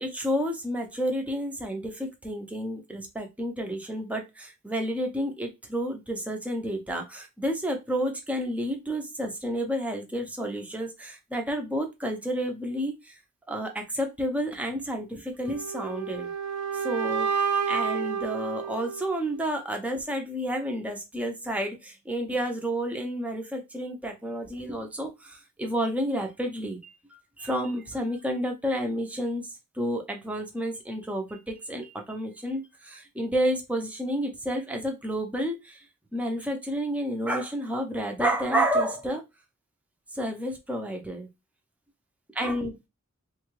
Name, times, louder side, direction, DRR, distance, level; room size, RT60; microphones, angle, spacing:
voice 1, 0.0-13.2 13.5-16.3 16.7-17.3 17.7-35.8 36.1-39.2 40.1-41.3 42.3-42.8, equal, 5° right, 2 dB, 0.6 m, -30 dB
sound 1, 15.4-19.5, right 6 dB, 85° right, 0.5 m, -30 dB
3.2 x 2.3 x 3.1 m, 0.23 s
head